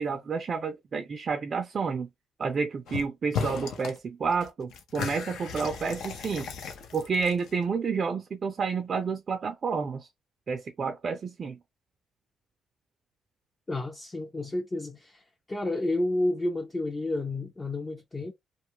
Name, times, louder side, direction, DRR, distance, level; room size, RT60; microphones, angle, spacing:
voice 1, 0.0-2.1 2.4-6.5 6.9-10.1 10.5-11.6, right 5 dB, 45° right, 0.4 m, -30 dB
sound 1, 2.9-3.1 3.3-4.0 4.3-7.6, left 6 dB, 80° left, 0.6 m, -35 dB
voice 2, 13.7-15.2 15.5-18.3, left 2 dB, 25° left, 0.4 m, -30 dB
2.4 x 2.2 x 2.9 m
cardioid pair, 90°, 0 cm